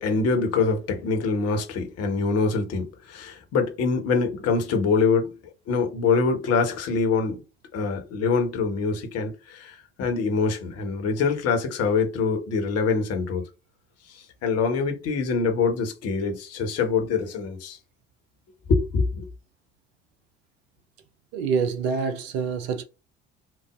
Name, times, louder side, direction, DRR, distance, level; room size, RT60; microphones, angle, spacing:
voice 1, 0.0-5.3 5.7-7.4 7.7-13.4 14.4-17.8 18.7-19.3, left 4 dB, 45° left, 1.3 m, -24 dB
voice 2, 21.3-22.8, right 5 dB, 65° right, 0.7 m, -26 dB
6.1 x 2.4 x 2.5 m
figure-of-eight pair, 60°, 34 cm